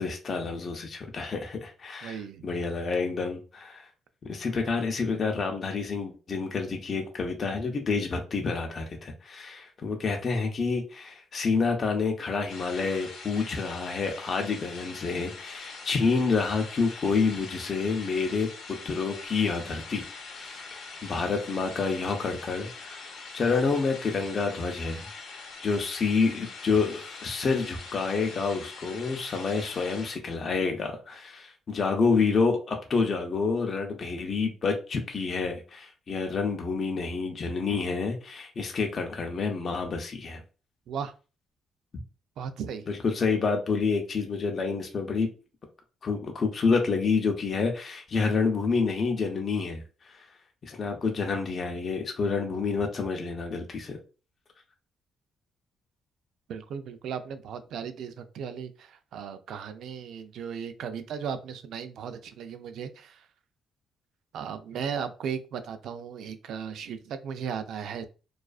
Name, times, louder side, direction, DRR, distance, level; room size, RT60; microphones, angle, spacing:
voice 1, 0.0-3.9 4.2-18.5 18.8-20.0 20.3-23.1 23.3-25.1 25.6-40.4 42.9-45.3 46.0-50.3 50.6-54.0, left 4 dB, 45° left, 3 dB, 0.5 m, -28 dB
voice 2, 2.0-2.4 40.9-41.1 42.4-42.8 56.5-63.2 64.3-68.1, right 7 dB, 75° right, 9 dB, 0.3 m, -36 dB
sound 1, 12.5-30.2, left 4 dB, 85° left, 0.7 m, -43 dB
2.3 x 2.3 x 2.3 m, 0.34 s
cardioid pair, 90°, 0 cm